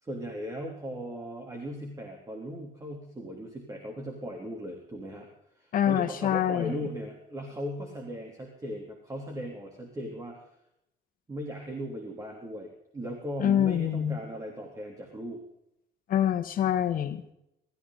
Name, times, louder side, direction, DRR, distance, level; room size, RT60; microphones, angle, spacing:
voice 1, 0.0-5.3 5.6-10.5 11.3-15.4, equal, 20° right, 1 dB, 3.4 m, -38 dB
voice 2, 5.7-6.8 13.4-14.2 16.1-17.2, left 10 dB, 55° left, 8 dB, 1.5 m, -26 dB
23.0 x 14.5 x 4.0 m, 0.80 s
cardioid pair, 110°, 17 cm